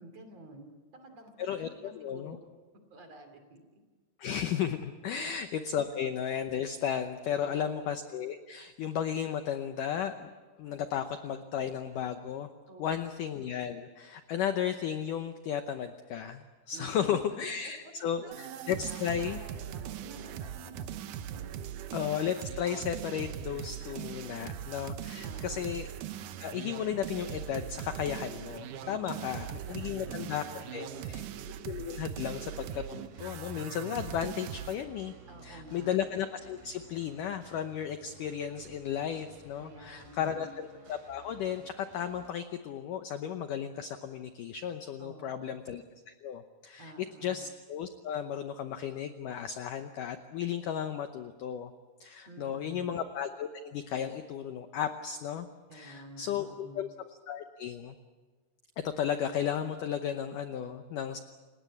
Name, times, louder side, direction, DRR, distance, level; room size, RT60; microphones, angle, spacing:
voice 1, 0.0-2.4 2.9-3.8 5.1-5.4 5.8-5.9 7.3-7.7 12.7-13.1 16.7-17.2 17.8-17.9 18.2-21.8 25.2-25.7 28.8-31.5 35.3-35.9 39.6-40.5 45.0-45.5 46.8-47.4 52.3-52.9 55.7-56.9, right 1 dB, 40° right, 6 dB, 3.5 m, -50 dB
voice 2, 1.4-2.4 4.2-10.3 10.6-12.5 12.8-19.4 21.9-25.9 26.4-30.4 30.7-31.2 31.6-35.1 35.4-45.8 46.2-46.9 47.2-51.7 52.0-56.9 57.3-58.0 58.8-61.2, left 9 dB, 75° left, 8 dB, 1.9 m, -34 dB
sound 1, 18.3-34.8, right 10 dB, 85° right, 1.8 m, -40 dB
sound 2, 25.3-42.3, right 2 dB, 60° right, 5.7 m, -57 dB
29.5 x 18.0 x 8.5 m, 1.4 s
omnidirectional pair, 4.9 m